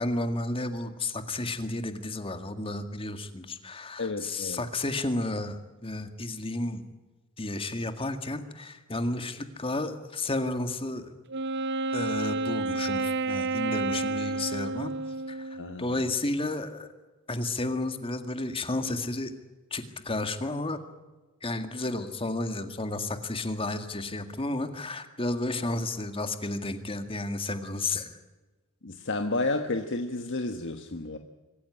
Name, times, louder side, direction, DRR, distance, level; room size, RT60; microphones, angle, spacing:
voice 1, 0.0-6.8 7.4-11.1 11.9-14.9 15.3-16.9 17.3-19.3 19.7-20.8 21.4-28.1, left 2 dB, 25° left, 9 dB, 2.0 m, -32 dB
voice 2, 4.0-4.6 15.6-16.0 28.8-31.2, left 2 dB, 55° left, 6 dB, 1.4 m, -31 dB
Wind instrument woodwind instrument, 11.3-15.8, right 3 dB, 55° right, 0.7 m, -30 dB
25.0 x 15.0 x 9.9 m, 1.2 s
head